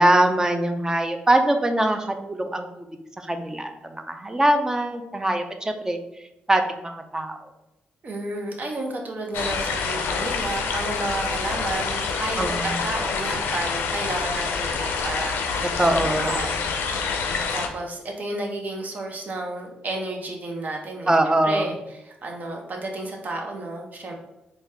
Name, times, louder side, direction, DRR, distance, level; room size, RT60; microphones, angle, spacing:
voice 1, 0.0-2.9 3.2-6.0 6.5-7.4 12.4-12.8 15.8-16.3 21.1-21.7, right 1 dB, 15° right, 6 dB, 0.5 m, -22 dB
voice 2, 8.0-16.7 17.5-24.1, right 2 dB, 50° right, 2 dB, 0.9 m, -32 dB
sound 1, 9.3-17.7, left 5 dB, 80° left, 0.4 m, -27 dB
4.0 x 2.4 x 3.3 m, 0.91 s
supercardioid pair, 60°, 4 cm